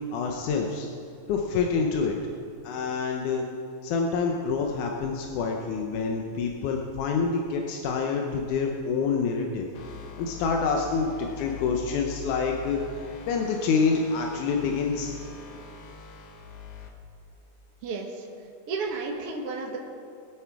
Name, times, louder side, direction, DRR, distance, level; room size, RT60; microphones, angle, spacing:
voice 1, 0.1-0.9 1.3-2.1 2.6-3.4 3.8-9.7 10.2-12.8 13.3-15.1, left 5 dB, 90° left, 1 dB, 2.4 m, -27 dB
sound 1, 9.7-16.9, left 7 dB, 60° left, 2.0 m, -43 dB
voice 2, 17.8-18.3 18.7-19.8, right 4 dB, 55° right, 1 dB, 2.0 m, -32 dB
22.5 x 8.3 x 4.7 m, 2.4 s
omnidirectional pair, 3.4 m